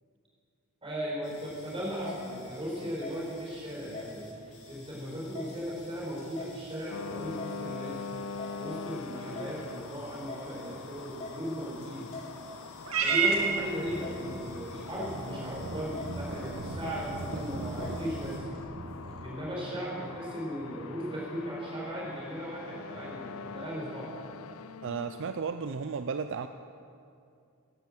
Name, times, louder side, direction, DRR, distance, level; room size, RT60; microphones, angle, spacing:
voice 1, 0.8-4.3 4.7-8.1 8.6-12.0 13.0-18.5 19.2-24.1, equal, 25° right, -5 dB, 4.6 m, -37 dB
sound 1, 1.2-18.4, left 2 dB, 35° left, 3.1 m, -47 dB
sound 2, 6.9-25.4, left 5 dB, 75° left, 0.5 m, -44 dB
Purr / Meow, 12.8-19.3, right 4 dB, 85° right, 1.8 m, -34 dB
voice 2, 24.8-26.5, right 5 dB, 60° right, 9 dB, 0.4 m, -34 dB
13.0 x 10.5 x 7.6 m, 2.4 s
head